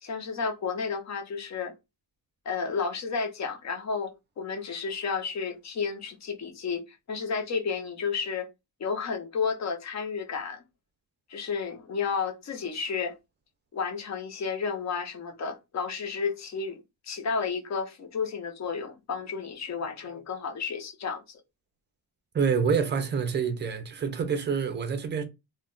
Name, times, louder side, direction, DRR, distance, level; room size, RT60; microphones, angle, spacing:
voice 1, 0.0-1.7 2.5-8.5 8.8-10.6 11.3-13.2 13.7-21.4, left 5 dB, 40° left, 0.6 m, -32 dB
voice 2, 22.3-25.2, right 6 dB, 25° right, 0.4 m, -27 dB
2.3 x 2.2 x 3.6 m
wide cardioid pair, 180°, 41 cm